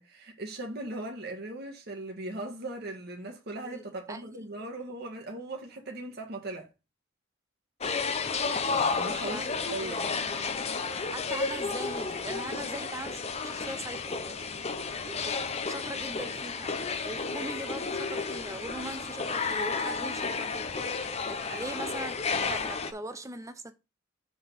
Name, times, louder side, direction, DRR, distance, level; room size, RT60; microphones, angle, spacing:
voice 1, 0.0-6.7 8.7-10.4 21.5-21.6, right 2 dB, 50° right, 1.5 m, -39 dB
voice 2, 3.6-4.8 9.3-9.4 11.1-14.5 15.0-15.4 15.7-20.7 21.3-23.7, right 2 dB, 15° right, 0.7 m, -41 dB
sound 1, 7.8-22.9, left 4 dB, 30° left, 0.7 m, -32 dB
6.6 x 3.9 x 5.2 m
head